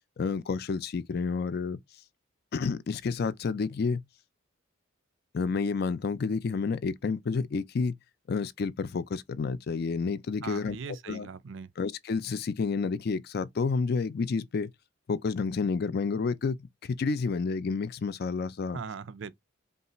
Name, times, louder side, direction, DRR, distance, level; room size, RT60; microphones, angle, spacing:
voice 1, 0.2-1.8 2.5-4.0 5.3-8.0 8.3-10.8 11.1-11.3 11.8-14.7 15.1-18.8, left 4 dB, 50° left, 0.4 m, -30 dB
voice 2, 10.4-11.7 18.7-19.3, right 5 dB, 60° right, 0.4 m, -40 dB
5.4 x 2.3 x 2.9 m
head